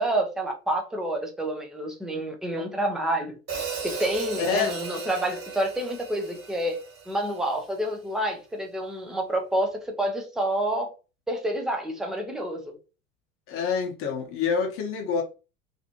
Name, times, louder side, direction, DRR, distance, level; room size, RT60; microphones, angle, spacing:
voice 1, 0.0-3.4 3.8-6.8 7.1-10.9 11.3-12.7, right 1 dB, ahead, 0.3 m, -28 dB
Hi-hat, 3.5-7.7, right 5 dB, 35° right, 1.4 m, -36 dB
voice 2, 4.4-4.7 13.5-15.2, left 6 dB, 35° left, 0.7 m, -27 dB
2.5 x 2.4 x 2.7 m
figure-of-eight pair, 75°, 40 cm